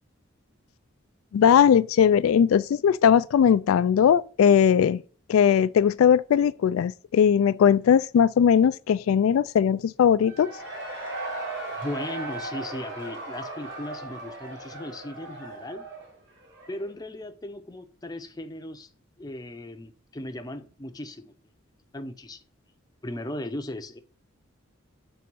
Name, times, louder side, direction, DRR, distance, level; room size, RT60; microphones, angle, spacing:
voice 1, 1.3-5.0 5.3-10.5, left 8 dB, 85° left, 0.3 m, -19 dB
Cheering / Crowd, 10.2-16.9, right 2 dB, 55° right, 2.7 m, -37 dB
voice 2, 11.8-15.8 16.7-18.9 19.2-21.3 21.9-22.4 23.0-24.0, left 1 dB, 20° left, 0.6 m, -37 dB
7.2 x 3.4 x 6.1 m
head